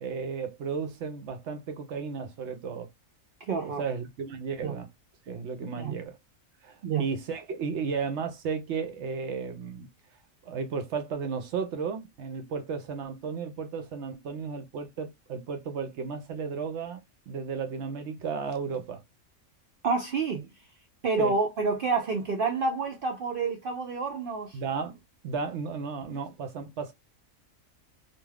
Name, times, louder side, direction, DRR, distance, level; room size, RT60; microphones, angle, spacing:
voice 1, 0.0-2.9 3.6-4.9 5.3-6.2 6.6-9.9 10.4-19.0 21.2-21.3 24.5-25.0 25.2-26.9, right 5 dB, 65° right, 0.8 m, -34 dB
voice 2, 3.4-3.8 4.6-4.7 5.8-5.9 6.8-7.0 19.8-20.5 21.0-24.6, right 4 dB, 85° right, 0.4 m, -28 dB
2.4 x 2.3 x 3.2 m
omnidirectional pair, 1.5 m